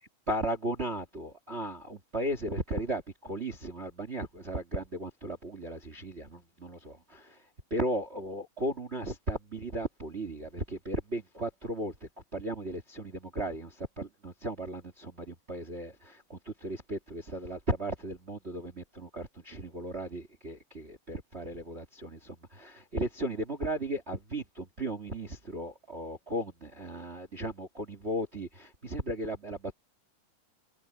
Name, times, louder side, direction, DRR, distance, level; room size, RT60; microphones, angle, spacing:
voice 1, 0.3-7.4 7.7-29.7, right 1 dB, 25° right, 1.8 m, -36 dB
omnidirectional pair, 3.6 m